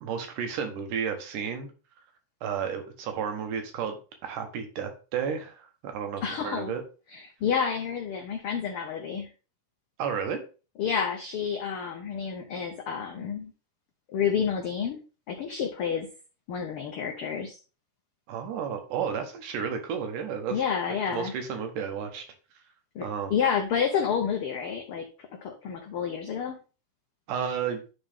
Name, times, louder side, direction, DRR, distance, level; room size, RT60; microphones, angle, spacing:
voice 1, 0.0-1.7 2.4-4.0 4.2-6.8 10.0-10.4 18.3-20.6 21.1-22.2 23.0-23.3 27.3-27.8, right 7 dB, 85° right, 5 dB, 2.8 m, -32 dB
voice 2, 6.2-6.7 7.1-9.3 10.8-13.5 14.1-15.0 15.3-16.1 16.5-17.6 20.5-21.3 22.9-25.1 25.4-26.6, left 7 dB, 90° left, 3 dB, 1.2 m, -29 dB
10.5 x 4.0 x 3.6 m, 0.34 s
omnidirectional pair, 3.6 m